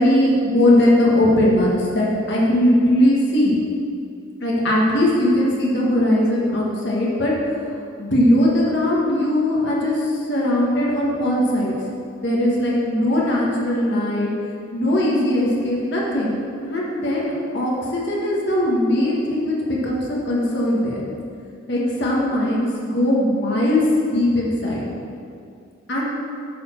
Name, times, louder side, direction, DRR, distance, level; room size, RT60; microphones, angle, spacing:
voice 1, 0.0-3.5 4.4-7.6 8.0-11.7 12.2-14.3 14.7-16.4 16.6-21.0 21.7-24.8 25.9-26.1, left 1 dB, 55° left, -4 dB, 1.5 m, -19 dB
9.2 x 4.2 x 6.7 m, 2.4 s
head